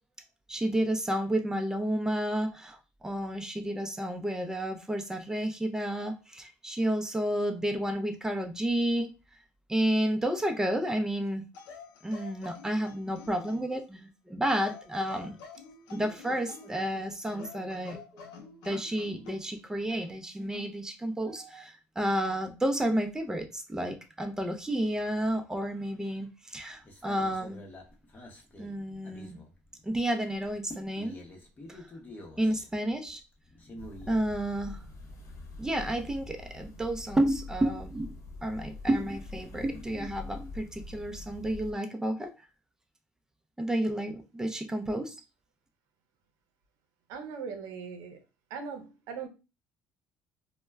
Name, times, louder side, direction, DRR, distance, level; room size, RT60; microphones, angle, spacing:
voice 1, 0.5-9.1 9.7-11.4 12.0-15.4 15.9-18.2 18.6-27.6 28.6-29.4 29.8-31.2 31.7-31.9 32.4-33.2 34.1-34.8 35.6-38.1 38.4-42.3 43.6-45.2, right 1 dB, 10° right, 0.5 m, -31 dB
sound 1, 11.5-13.8 14.5-16.8 17.2-19.4 20.5-20.8, left 5 dB, 85° left, 0.6 m, -49 dB
sound 2, 26.7-30.0 30.3-34.5, left 1 dB, 30° left, 0.8 m, -48 dB
sound 3, 33.8-41.7, left 3 dB, 55° left, 0.9 m, -44 dB
voice 2, 47.1-48.2 48.5-49.3, right 6 dB, 85° right, 0.6 m, -39 dB
2.1 x 2.1 x 3.3 m
supercardioid pair, 90°, 6 cm